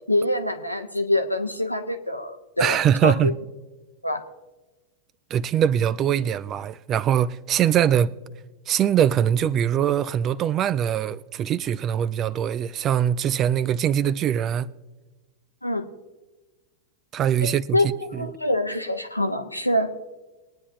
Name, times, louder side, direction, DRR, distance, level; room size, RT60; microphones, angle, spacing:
voice 1, 0.1-3.3 4.0-4.2 15.6-15.9 17.4-19.9, left 1 dB, 85° left, 0.9 m, -25 dB
voice 2, 2.6-3.4 5.3-8.1 8.7-14.7 17.1-18.3, right 9 dB, 30° right, 0.4 m, -22 dB
22.0 x 9.7 x 2.7 m
figure-of-eight pair, 90°, 0 cm